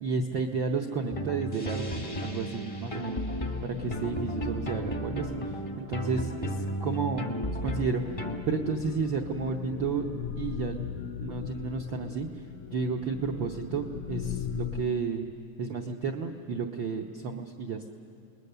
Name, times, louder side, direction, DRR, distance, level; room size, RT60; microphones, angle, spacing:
voice 1, 0.0-3.2 3.6-5.4 5.8-6.6 6.8-7.3 7.6-8.0 8.5-10.1 10.4-10.8 11.2-12.3 12.7-15.3 15.6-17.9, right 5 dB, 80° right, 3 dB, 1.0 m, -31 dB
sound 1, 1.1-8.4, equal, 30° left, 0.5 m, -34 dB
sound 2, 3.5-14.8, left 9 dB, 75° left, 1.9 m, -40 dB
29.0 x 20.5 x 6.7 m, 2.6 s
omnidirectional pair, 3.3 m